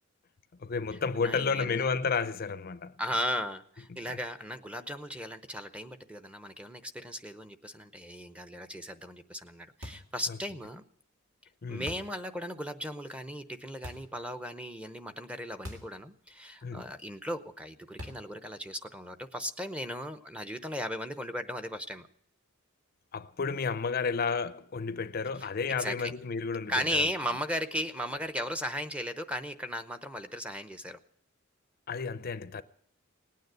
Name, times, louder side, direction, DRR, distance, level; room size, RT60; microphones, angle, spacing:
voice 1, 0.6-3.0 3.9-4.2 10.3-10.4 11.6-11.9 16.6-16.9 23.1-27.0 31.9-32.6, left 5 dB, 45° left, 0.5 m, -32 dB
voice 2, 1.2-1.9 3.0-10.8 11.7-22.1 25.4-25.5 25.8-26.1 26.7-31.0, equal, 5° right, 0.7 m, -36 dB
sound 1, 9.8-10.2 11.9-12.2 13.8-14.2 15.6-16.0 16.3-16.4 18.0-18.4, left 1 dB, 65° right, 2.1 m, -44 dB
18.5 x 9.4 x 7.9 m
head